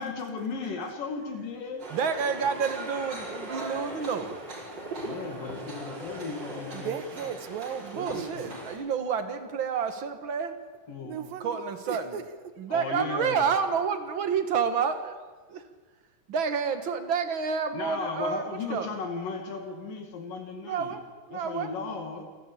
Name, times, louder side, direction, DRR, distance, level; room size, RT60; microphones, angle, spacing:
voice 1, 0.0-1.9 5.0-7.0 8.0-8.7 10.9-11.2 12.7-13.5 17.7-20.9 21.3-22.2, left 4 dB, 75° left, 4 dB, 3.7 m, -36 dB
sound 1, 1.8-8.8, right 1 dB, 30° right, 4.6 m, -39 dB
voice 2, 1.9-4.4 7.8-10.6 11.4-12.2 12.6-15.2 15.5-15.6 16.3-18.9 20.6-21.0 21.3-21.8, right 6 dB, 50° right, 8 dB, 1.7 m, -29 dB
voice 3, 6.7-8.3 11.0-11.6 11.9-12.6, right 8 dB, 85° right, 10 dB, 3.1 m, -36 dB
28.5 x 13.0 x 8.5 m, 1.4 s
omnidirectional pair, 3.9 m